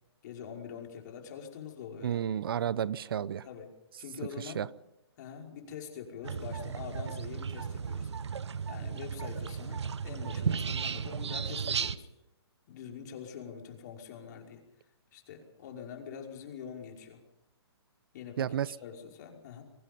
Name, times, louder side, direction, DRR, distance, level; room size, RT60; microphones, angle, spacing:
voice 1, 0.2-2.2 3.4-3.7 4.0-4.6 5.2-8.1 8.7-12.1 12.7-14.6 15.1-17.2 18.1-19.6, left 7 dB, 40° left, 2 dB, 5.4 m, -44 dB
voice 2, 2.0-3.5 4.4-4.7 18.4-18.8, right 9 dB, 60° right, 19 dB, 0.8 m, -32 dB
sound 1, 6.2-12.0, right 6 dB, 85° right, 1.1 m, -35 dB
24.0 x 23.5 x 5.5 m, 0.85 s
hypercardioid pair, 155°, 14 cm